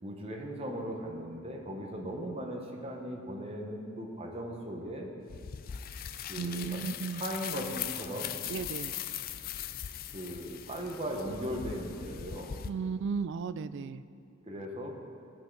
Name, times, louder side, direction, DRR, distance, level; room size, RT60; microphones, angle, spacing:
voice 1, 0.0-5.1 6.3-6.8 7.1-8.3 10.1-12.6 14.5-14.9, equal, 30° right, 0 dB, 1.1 m, -38 dB
sound 1, 5.3-12.7, left 9 dB, 45° left, 0.4 m, -40 dB
voice 2, 6.4-7.2 8.5-8.9 12.6-14.0, right 5 dB, 60° right, 13 dB, 0.3 m, -35 dB
17.0 x 5.7 x 3.9 m, 2.5 s
head